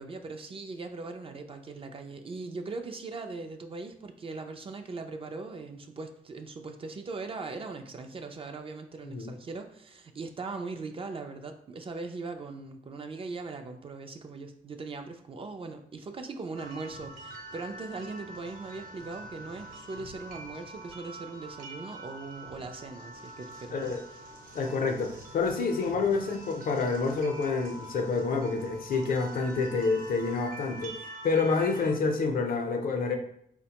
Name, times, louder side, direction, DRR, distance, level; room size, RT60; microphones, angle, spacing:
voice 1, 0.0-23.9, right 3 dB, 35° right, 6 dB, 0.4 m, -40 dB
sound 1, 16.6-31.9, right 1 dB, 55° right, 0.7 m, -45 dB
voice 2, 24.5-33.1, left 4 dB, 60° left, 4 dB, 0.6 m, -28 dB
4.3 x 2.1 x 2.8 m, 0.70 s
cardioid pair, 95°, 17 cm